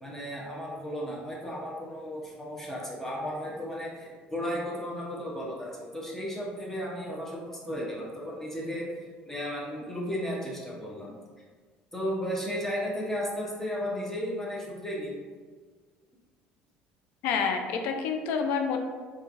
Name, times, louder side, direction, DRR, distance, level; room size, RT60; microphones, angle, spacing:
voice 1, 0.0-8.9 9.3-11.1 11.9-15.1, equal, 10° left, -5 dB, 0.6 m, -34 dB
voice 2, 17.2-18.8, left 6 dB, 75° left, 4 dB, 0.3 m, -28 dB
3.0 x 2.3 x 2.4 m, 1.5 s
cardioid pair, 110°, 4 cm